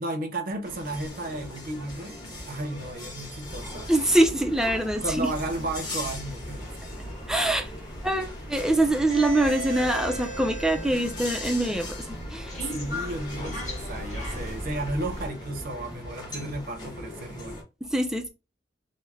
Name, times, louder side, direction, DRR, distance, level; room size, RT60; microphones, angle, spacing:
voice 1, 0.0-2.2 2.5-3.9 5.0-6.7 12.7-17.6, right 1 dB, 50° right, 0.7 m, -33 dB
sound 1, 0.6-17.6, left 1 dB, 25° left, 1.1 m, -40 dB
sound 2, 3.4-15.3, equal, 40° left, 1.4 m, -38 dB
voice 2, 3.9-5.3 7.3-7.7 8.0-12.6 17.8-18.3, right 1 dB, 5° right, 0.4 m, -24 dB
3.2 x 2.1 x 3.4 m
head